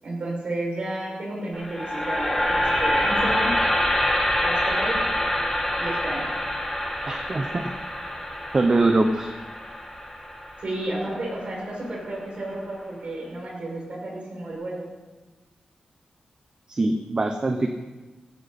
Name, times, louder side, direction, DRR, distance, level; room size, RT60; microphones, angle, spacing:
voice 1, 0.0-3.5 4.4-5.0 5.8-6.3 10.6-14.9, right 1 dB, 50° right, -3 dB, 6.4 m, -32 dB
sound 1, 1.5-11.7, left 1 dB, 10° left, 3.2 m, -26 dB
voice 2, 7.1-7.6 8.5-9.3 16.7-17.7, right 2 dB, 30° right, 5 dB, 1.0 m, -22 dB
17.0 x 16.0 x 4.3 m, 1.2 s
wide cardioid pair, 125°, 2 cm